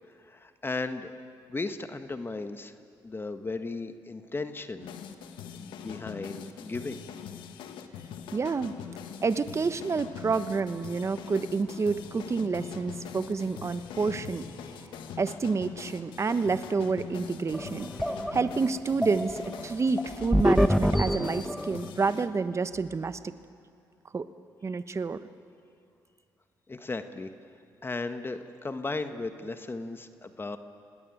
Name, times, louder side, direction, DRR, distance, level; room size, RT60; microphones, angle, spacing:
voice 1, 0.2-1.1 1.5-2.7 3.0-4.9 5.5-7.0 26.7-27.3 27.8-30.6, left 3 dB, 25° left, 9 dB, 1.4 m, -35 dB
sound 1, 4.8-22.3, left 8 dB, 80° left, 1.6 m, -43 dB
voice 2, 8.3-8.7 9.2-14.4 15.2-17.9 18.3-23.3 24.1-24.3 24.6-25.2, right 4 dB, 35° right, 12 dB, 1.1 m, -29 dB
sound 2, 9.1-19.7, left 2 dB, 60° left, 8.0 m, -53 dB
sound 3, 17.5-21.9, equal, ahead, 1.1 m, -26 dB
27.0 x 19.0 x 9.2 m, 2.4 s
supercardioid pair, 65°, 8 cm